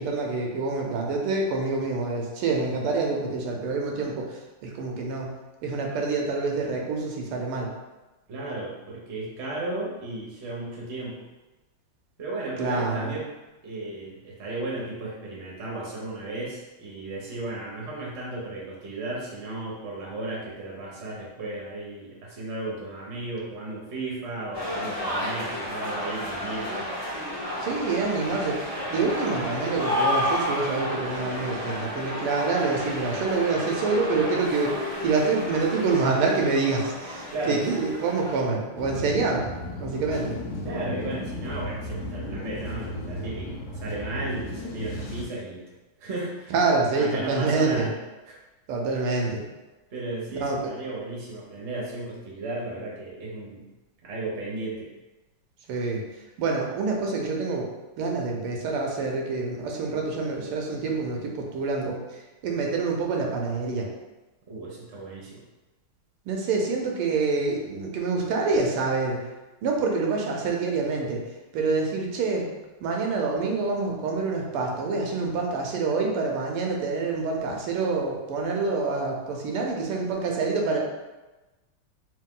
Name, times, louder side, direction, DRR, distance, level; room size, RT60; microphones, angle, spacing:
voice 1, 0.0-5.3 5.6-7.7 12.6-13.1 27.6-28.6 28.9-39.5 39.8-40.4 46.5-47.9 48.7-49.4 50.4-50.7 55.7-56.0 56.4-57.7 58.0-62.0 62.4-63.9 66.3-69.2 69.6-71.2 71.5-72.5 72.8-80.8, right 3 dB, 80° right, 0 dB, 1.6 m, -26 dB
voice 2, 8.3-11.2 12.2-13.3 13.6-26.9 37.3-37.8 40.6-45.6 46.0-46.5 46.9-47.9 48.3-48.4 49.9-53.6 54.0-54.9 64.5-65.4, right 2 dB, 45° right, -4 dB, 1.0 m, -34 dB
sound 1, 24.5-38.4, left 1 dB, 20° left, 0.9 m, -31 dB
sound 2, 38.8-45.3, left 1 dB, 90° left, 1.6 m, -34 dB
3.7 x 3.0 x 3.7 m, 1.1 s
omnidirectional pair, 2.4 m